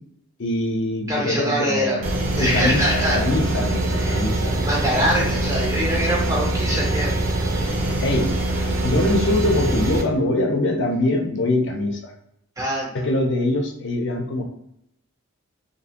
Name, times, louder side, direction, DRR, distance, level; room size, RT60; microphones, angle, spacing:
voice 1, 0.4-2.0 2.4-4.7 7.8-8.4 8.8-12.1 12.9-14.4, left 1 dB, 55° left, 2 dB, 0.5 m, -23 dB
voice 2, 1.1-2.0 2.4-3.2 4.0-4.2 4.6-7.2 12.6-13.0, equal, 15° right, -2 dB, 0.4 m, -23 dB
sound 1, 2.0-10.0, right 1 dB, 70° right, 0.6 m, -23 dB
2.6 x 2.4 x 2.8 m, 0.77 s
head